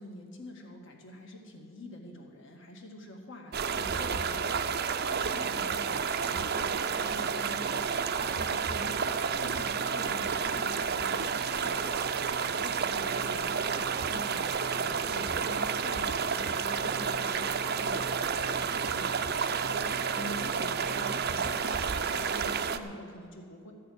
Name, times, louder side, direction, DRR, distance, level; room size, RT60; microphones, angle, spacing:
voice 1, 0.0-4.7 5.0-9.0 9.3-23.7, left 1 dB, 60° left, 1 dB, 1.8 m, -45 dB
sound 1, 3.5-22.8, right 6 dB, 45° right, 0.5 m, -30 dB
14.0 x 6.7 x 9.3 m, 2.3 s
head